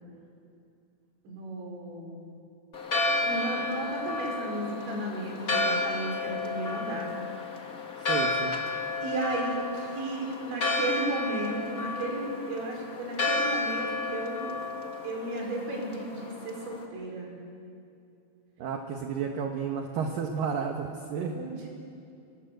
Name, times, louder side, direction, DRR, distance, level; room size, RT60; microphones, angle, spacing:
voice 1, 1.3-2.4 3.2-7.1 9.0-14.5 15.0-17.3 21.3-21.7, right 2 dB, 85° right, 0 dB, 7.3 m, -34 dB
Church bell, 2.7-16.8, left 2 dB, 80° left, 0.8 m, -32 dB
voice 2, 8.1-8.6 18.6-21.4, right 6 dB, 60° right, 3 dB, 2.7 m, -32 dB
26.5 x 22.5 x 8.0 m, 2.5 s
omnidirectional pair, 5.1 m